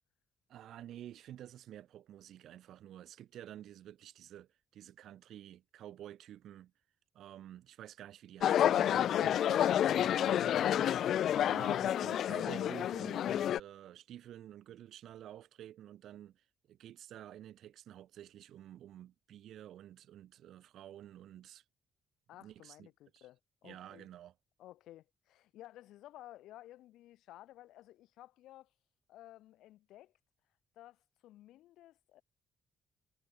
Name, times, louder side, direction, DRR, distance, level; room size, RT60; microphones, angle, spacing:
voice 1, 0.5-6.7 7.1-21.6 22.4-22.9 23.1-23.3 23.6-24.3, right 11 dB, 75° right, 6.6 m, -51 dB
sound 1, 8.4-13.6, left 10 dB, 70° left, 0.5 m, -29 dB
voice 2, 22.3-24.1 24.6-28.7 29.1-30.1 30.7-32.2, left 14 dB, 85° left, 2.7 m, -55 dB
cardioid pair, 90°, 0 cm